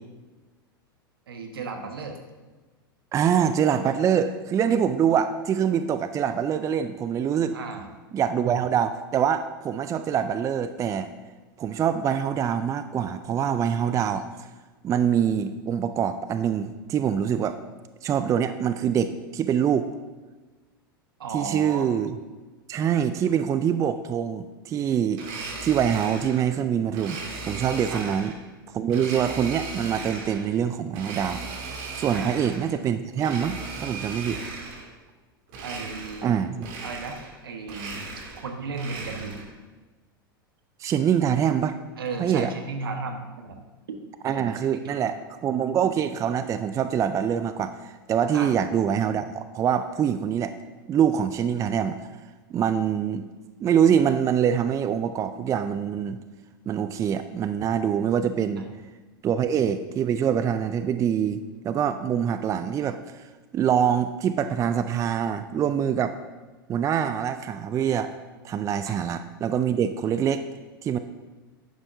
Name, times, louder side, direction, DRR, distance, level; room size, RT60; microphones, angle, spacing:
voice 1, 1.3-2.2 7.5-7.8 21.2-21.9 27.9-28.2 32.1-32.5 35.6-36.3 36.8-37.2 37.4-38.0 38.4-39.4 42.0-43.6 43.9-44.0 44.2-45.1 48.3-48.5 58.6-58.7 68.9-69.0, right 4 dB, 80° right, 5 dB, 1.3 m, -35 dB
voice 2, 3.1-7.6 8.1-11.1 11.6-14.3 14.8-17.6 18.0-19.9 21.3-22.2 22.7-27.2 27.5-28.3 28.7-31.4 31.9-34.4 36.2-36.7 40.8-41.8 42.2-42.5 44.2-50.5 50.9-52.0 52.5-53.3 53.6-56.2 56.7-58.7 59.2-61.4 61.6-63.3 63.5-66.2 66.7-68.1 68.4-70.5 70.8-71.0, right 8 dB, 25° right, 11 dB, 0.4 m, -24 dB
Domestic sounds home sounds, 25.1-26.4 26.9-28.4 28.9-30.5 30.9-32.7 33.1-34.9 35.5-36.3 36.6-37.4 37.6-39.5, right 3 dB, 55° right, 2.5 m, -37 dB
11.0 x 8.8 x 2.7 m, 1.3 s
hypercardioid pair, 95°, 12 cm